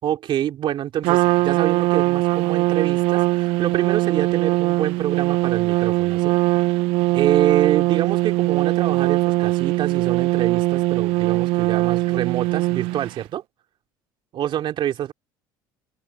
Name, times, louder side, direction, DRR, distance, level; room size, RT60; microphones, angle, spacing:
voice 1, 0.0-6.7 7.1-13.4 14.3-15.1, right 11 dB, 55° right, 3.2 m, -26 dB
Trumpet, 1.0-13.2, right 20 dB, 75° right, 0.5 m, -21 dB
supercardioid pair, 85°, 10 cm